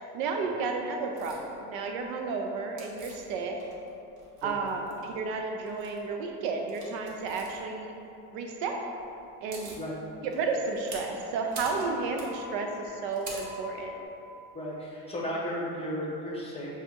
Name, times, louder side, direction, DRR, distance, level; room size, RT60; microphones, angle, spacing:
voice 1, 0.1-3.6 4.4-7.9 8.3-8.8 9.4-9.8 10.2-14.0, right 4 dB, 65° right, 3 dB, 0.6 m, -32 dB
sound 1, 1.2-1.4 2.8-3.9 4.2-5.1 5.6-6.0 6.7-7.5 9.0-9.1 9.3-9.8 10.3-14.1, right 1 dB, 40° right, 1.0 m, -44 dB
voice 2, 14.5-16.7, equal, 15° left, -5 dB, 0.9 m, -34 dB
6.6 x 2.4 x 2.8 m, 2.8 s
supercardioid pair, 105°, 47 cm